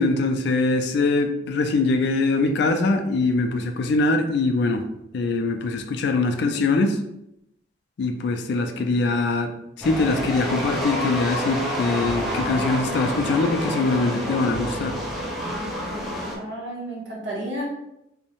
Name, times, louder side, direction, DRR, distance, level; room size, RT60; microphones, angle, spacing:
voice 1, 0.0-4.8 5.1-7.0 8.0-9.5 9.8-15.0, left 3 dB, 60° left, 6 dB, 0.3 m, -23 dB
sound 1, 9.8-16.4, equal, ahead, 0.5 m, -28 dB
voice 2, 16.4-17.6, right 1 dB, 70° right, -4 dB, 1.0 m, -32 dB
2.6 x 2.1 x 2.9 m, 0.83 s
head